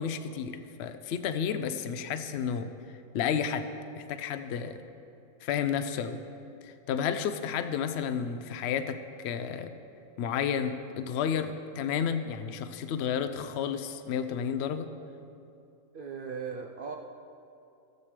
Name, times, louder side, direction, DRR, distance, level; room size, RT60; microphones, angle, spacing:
voice 1, 0.0-2.7 3.1-3.7 4.0-4.8 5.4-6.2 6.6-9.7 10.2-14.9, left 7 dB, 65° left, 10 dB, 0.7 m, -31 dB
voice 2, 15.9-17.0, right 6 dB, 70° right, 3 dB, 0.5 m, -38 dB
16.5 x 7.4 x 3.3 m, 2.7 s
omnidirectional pair, 1.4 m